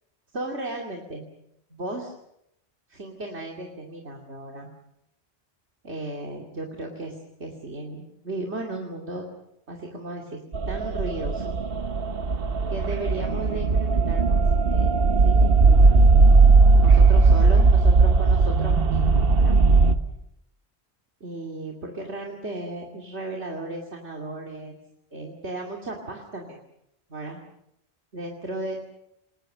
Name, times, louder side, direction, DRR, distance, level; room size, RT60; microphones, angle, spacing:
voice 1, 0.3-1.3 1.7-2.1 2.9-4.7 5.8-9.3 9.7-10.4 10.7-11.6 12.7-16.0 16.8-19.5 21.2-24.8 25.1-26.6 27.1-27.4 28.1-28.9, right 2 dB, 75° right, 0 dB, 2.9 m, -35 dB
sound 1, 10.5-19.9, right 3 dB, 60° right, 1.4 m, -18 dB
28.5 x 20.5 x 6.6 m, 0.79 s
omnidirectional pair, 1.1 m